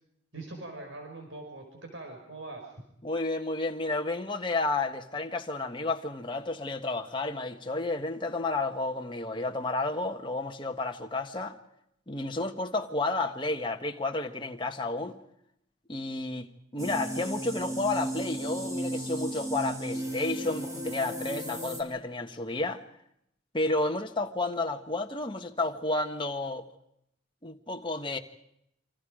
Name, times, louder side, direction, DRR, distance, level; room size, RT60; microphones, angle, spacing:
voice 1, 0.3-2.7, right 2 dB, 75° right, 5.1 m, -42 dB
voice 2, 3.0-11.6 12.1-15.2 15.9-16.5 16.7-22.8 23.5-26.6 27.4-28.2, left 2 dB, 25° left, 1.5 m, -31 dB
sound 1, 16.8-21.8, right 1 dB, 15° right, 2.9 m, -35 dB
28.0 x 25.5 x 5.1 m
head